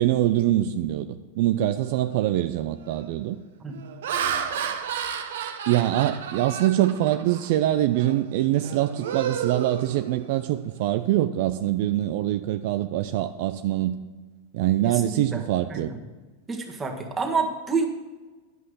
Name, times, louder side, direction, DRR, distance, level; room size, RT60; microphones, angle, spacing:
voice 1, 0.0-3.4 5.7-14.0 14.5-15.9, right 13 dB, 60° right, 9 dB, 0.4 m, -24 dB
Laughter, 1.9-2.2 2.8-3.1 3.7-7.5 7.9-8.2 8.6-10.5, right 8 dB, 80° right, 0.9 m, -32 dB
voice 2, 14.8-15.4 15.7-16.0 16.5-17.9, right 4 dB, 20° right, 2 dB, 1.6 m, -28 dB
11.0 x 5.6 x 6.4 m, 1.3 s
hypercardioid pair, 110°, 0 cm